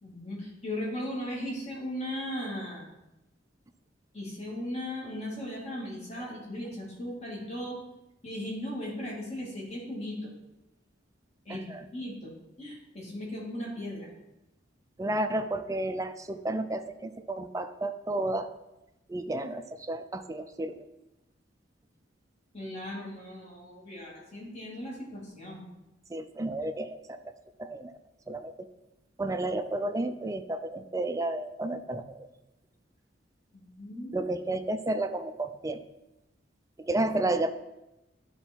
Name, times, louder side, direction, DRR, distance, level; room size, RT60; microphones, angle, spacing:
voice 1, 0.0-2.9 4.1-7.8 8.2-10.3 11.4-12.3 12.6-14.1 22.5-25.6 33.5-34.3, left 1 dB, 35° left, -4 dB, 2.5 m, -37 dB
voice 2, 11.5-11.9 15.0-18.5 19.1-20.9 26.1-27.3 27.6-28.0 28.3-28.7 29.2-32.3 34.1-35.8 36.8-37.5, right 2 dB, 20° right, 9 dB, 0.4 m, -32 dB
10.5 x 4.0 x 4.5 m, 0.93 s
head